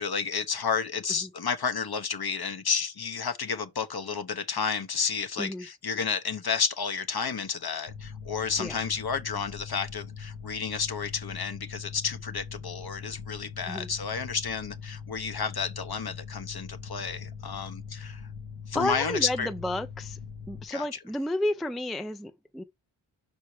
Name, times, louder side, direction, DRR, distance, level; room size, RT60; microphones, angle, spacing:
voice 1, 0.0-18.2 18.7-19.5 20.7-21.0, left 6 dB, 50° left, 1.0 m, -31 dB
Mechanical fan, 7.9-20.6, left 6 dB, 75° left, 1.7 m, -41 dB
voice 2, 18.7-20.2 20.5-22.6, left 1 dB, ahead, 0.4 m, -31 dB
5.7 x 4.4 x 4.9 m
wide cardioid pair, 115°, 48 cm